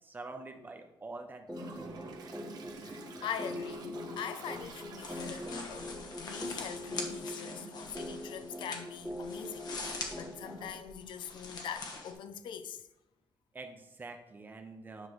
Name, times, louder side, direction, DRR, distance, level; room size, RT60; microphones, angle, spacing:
voice 1, 0.0-1.9 13.5-15.1, right 3 dB, 25° right, 0.9 m, -46 dB
sound 1, 1.5-10.8, left 1 dB, 5° right, 1.3 m, -43 dB
Toilet flush, 1.5-5.9, right 4 dB, 55° right, 1.1 m, -48 dB
voice 2, 2.8-12.9, left 8 dB, 75° left, 0.6 m, -43 dB
sound 2, 5.0-12.1, left 4 dB, 55° left, 1.4 m, -43 dB
9.9 x 3.3 x 6.2 m
cardioid pair, 155°, 8 cm